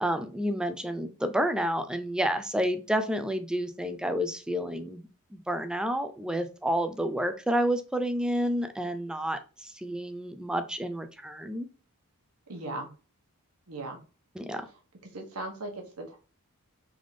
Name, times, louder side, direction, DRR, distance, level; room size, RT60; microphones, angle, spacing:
voice 1, 0.0-5.1 5.3-11.7 14.4-14.6, equal, 5° right, 9 dB, 0.3 m, -30 dB
voice 2, 12.5-12.9 13.7-14.0 15.1-16.2, right 2 dB, 75° right, 2 dB, 1.2 m, -37 dB
3.8 x 3.5 x 3.2 m, 0.35 s
head